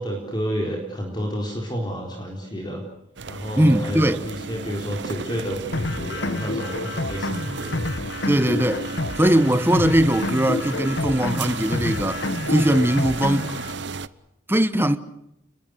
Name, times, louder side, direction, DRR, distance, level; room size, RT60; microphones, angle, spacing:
voice 1, 0.0-2.8 3.3-7.8, equal, 20° left, 4.4 m, -30 dB
sound 1, 3.2-14.1, right 4 dB, 60° right, 0.9 m, -34 dB
voice 2, 3.6-4.2 8.3-8.9 9.2-13.5 14.5-15.0, right 1 dB, 10° right, 1.1 m, -20 dB
sound 2, 5.7-13.7, left 2 dB, 60° left, 1.3 m, -29 dB
29.5 x 21.5 x 6.7 m
head